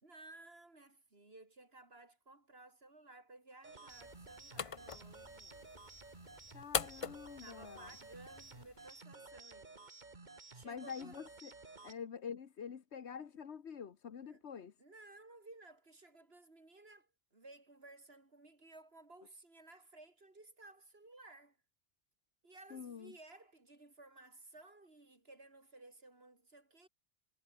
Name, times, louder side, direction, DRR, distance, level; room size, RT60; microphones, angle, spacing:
voice 1, 0.0-5.7 7.4-9.8 10.5-11.2 14.2-14.4 14.8-21.6 22.4-26.9, right 2 dB, 65° right, 3.8 m, -57 dB
sound 1, 3.6-12.0, right 3 dB, 45° right, 2.1 m, -54 dB
sound 2, 3.9-8.9, left 6 dB, 35° left, 0.6 m, -44 dB
voice 2, 6.5-7.9 10.6-11.5 11.8-14.7 22.7-23.1, left 7 dB, 85° left, 1.5 m, -46 dB
omnidirectional pair, 1.1 m